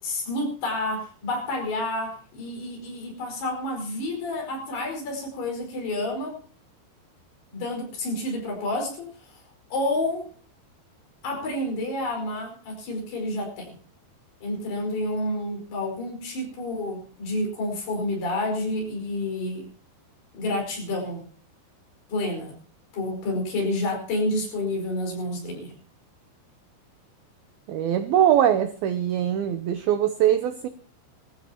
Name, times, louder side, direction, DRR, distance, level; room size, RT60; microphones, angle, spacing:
voice 1, 0.0-6.4 7.5-9.3 9.7-10.3 11.2-13.8 14.4-19.7 20.3-21.3 22.1-22.6 22.9-25.7, left 1 dB, 60° left, 2 dB, 6.8 m, -29 dB
voice 2, 27.7-30.7, right 10 dB, 80° right, 9 dB, 2.2 m, -22 dB
20.5 x 15.0 x 2.9 m, 0.43 s
omnidirectional pair, 5.3 m